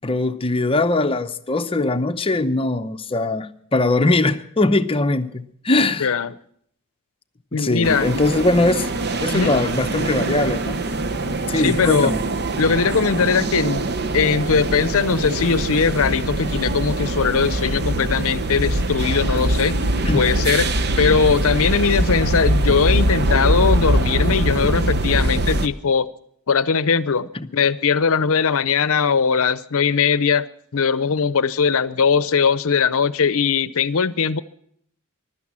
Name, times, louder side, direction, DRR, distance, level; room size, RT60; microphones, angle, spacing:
voice 1, 0.0-6.1 7.5-8.9 9.2-10.8 11.5-12.2 20.1-20.2 21.1-21.3 27.3-27.5, left 2 dB, 25° left, 9 dB, 0.7 m, -21 dB
voice 2, 6.0-6.3 7.5-8.2 9.3-9.6 11.5-12.1 12.6-19.7 20.1-26.1 26.5-30.5 30.7-34.4, left 5 dB, 70° left, 16 dB, 0.7 m, -20 dB
sound 1, 7.8-25.7, right 1 dB, 50° right, 0.8 m, -22 dB
16.0 x 12.0 x 7.4 m, 0.68 s
head